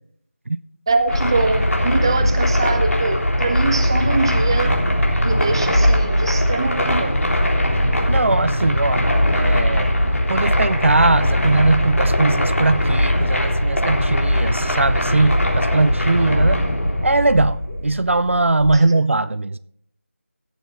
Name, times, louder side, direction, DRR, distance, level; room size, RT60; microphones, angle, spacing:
sound 1, 0.9-18.8, left 1 dB, 25° left, 1.2 m, -34 dB
voice 1, 0.9-4.7 5.2-7.1, right 3 dB, 20° right, 0.6 m, -23 dB
sound 2, 1.1-18.4, equal, 75° left, 3.5 m, -20 dB
voice 2, 8.1-10.0 10.3-16.6 17.0-19.6, right 2 dB, 60° right, 0.5 m, -20 dB
16.5 x 7.0 x 4.0 m
figure-of-eight pair, 170°, 8 cm